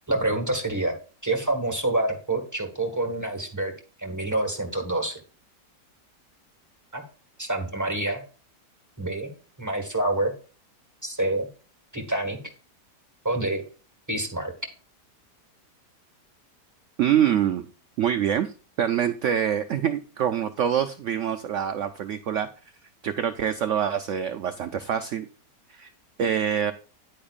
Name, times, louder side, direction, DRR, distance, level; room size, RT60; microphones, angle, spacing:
voice 1, 0.1-1.0 1.2-3.7 4.0-5.2 6.9-7.0 7.4-8.2 9.0-9.3 9.6-10.3 11.0-11.5 11.9-12.4 13.2-13.6 14.1-14.5, right 2 dB, 10° right, 4 dB, 1.2 m, -27 dB
voice 2, 17.0-17.7 18.0-18.5 18.8-22.5 23.0-25.3 25.7-25.9 26.2-26.7, right 9 dB, 80° right, 9 dB, 0.6 m, -25 dB
10.0 x 8.6 x 2.4 m, 0.38 s
omnidirectional pair, 1.8 m